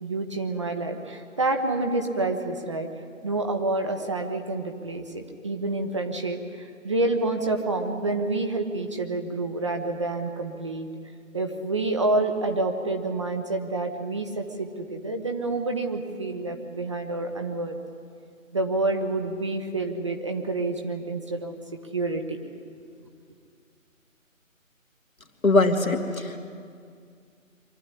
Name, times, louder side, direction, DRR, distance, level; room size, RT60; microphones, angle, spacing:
voice 1, 0.0-2.9 3.2-10.9 11.3-17.7 18.5-21.6 21.9-22.4, right 2 dB, 20° right, 4 dB, 1.0 m, -28 dB
voice 2, 25.4-26.4, left 2 dB, 80° left, 4 dB, 2.6 m, -21 dB
24.0 x 14.0 x 9.9 m, 2.3 s
figure-of-eight pair, 155°, 41 cm